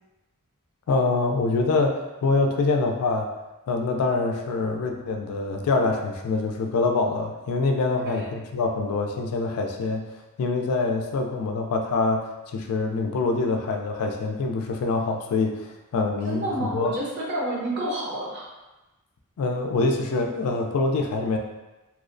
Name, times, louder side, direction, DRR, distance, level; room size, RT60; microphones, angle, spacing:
voice 1, 0.9-3.3 3.7-10.1 10.4-15.7 15.9-16.9 19.4-21.4, left 3 dB, 80° left, 3 dB, 0.3 m, -25 dB
voice 2, 7.9-8.2 16.2-18.5, right 1 dB, 50° right, -4 dB, 0.7 m, -29 dB
2.6 x 2.0 x 2.5 m, 1.1 s
head